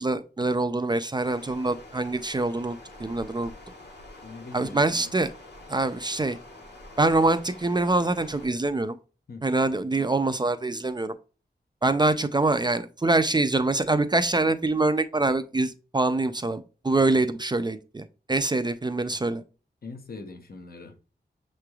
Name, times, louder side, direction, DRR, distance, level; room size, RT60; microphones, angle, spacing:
voice 1, 0.0-3.5 4.5-5.3 5.7-6.4 7.0-9.0 9.4-11.1 11.8-19.4, right 2 dB, 25° right, 0.4 m, -25 dB
Stream, 1.2-8.5, left 2 dB, 80° left, 1.5 m, -46 dB
voice 2, 4.2-5.1 9.3-9.6 19.8-21.0, left 3 dB, 60° left, 0.8 m, -42 dB
6.6 x 3.2 x 2.3 m
wide cardioid pair, 100°, 17 cm